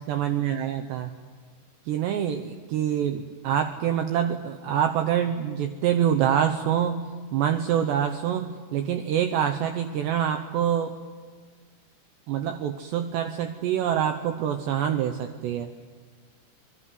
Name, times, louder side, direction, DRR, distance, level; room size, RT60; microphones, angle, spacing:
voice 1, 0.1-1.1 1.9-7.0 7.3-11.0 12.3-15.7, right 9 dB, 75° right, 7 dB, 2.7 m, -26 dB
26.0 x 21.0 x 9.5 m, 1.5 s
omnidirectional pair, 5.8 m